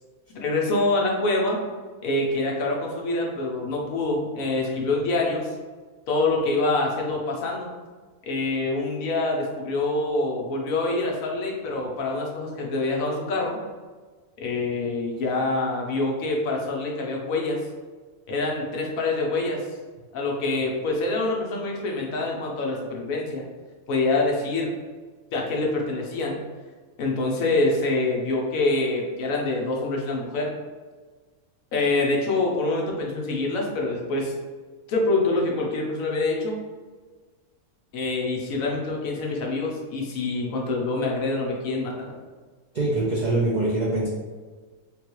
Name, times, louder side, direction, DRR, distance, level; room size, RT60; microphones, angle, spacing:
voice 1, 0.3-1.6 2.0-5.5 6.1-7.7 8.2-13.6 14.4-17.6 18.3-19.6 20.1-23.4 23.9-24.7 25.3-26.4 27.0-30.5 31.7-34.3 34.9-36.6 37.9-42.1, left 2 dB, 70° left, -1 dB, 1.1 m, -25 dB
voice 2, 42.7-44.1, right 2 dB, 80° right, -5 dB, 0.4 m, -23 dB
3.7 x 2.3 x 3.0 m, 1.4 s
omnidirectional pair, 1.6 m